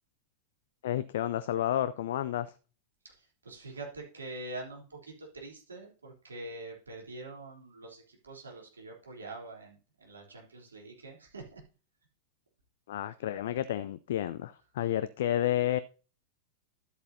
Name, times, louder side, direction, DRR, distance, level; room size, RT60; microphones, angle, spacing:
voice 1, 0.8-2.5 12.9-15.8, left 12 dB, 60° left, 15 dB, 0.4 m, -31 dB
voice 2, 3.0-11.6, right 2 dB, 75° right, -1 dB, 3.3 m, -45 dB
13.0 x 8.0 x 2.8 m, 0.36 s
figure-of-eight pair, 90°, 0 cm